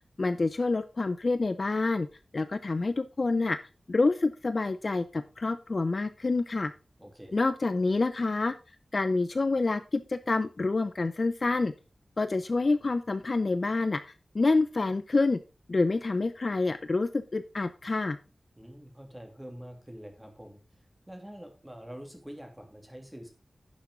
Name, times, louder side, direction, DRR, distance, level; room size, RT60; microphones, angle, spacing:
voice 1, 0.2-2.1 2.3-3.6 3.9-6.7 7.3-8.5 8.9-11.7 12.2-15.4 15.7-18.2, left 3 dB, 50° left, 12 dB, 0.6 m, -27 dB
voice 2, 7.0-7.4 18.6-20.6 21.1-23.3, equal, 10° right, 3 dB, 2.8 m, -45 dB
10.5 x 7.1 x 3.7 m, 0.32 s
wide cardioid pair, 100°, 0 cm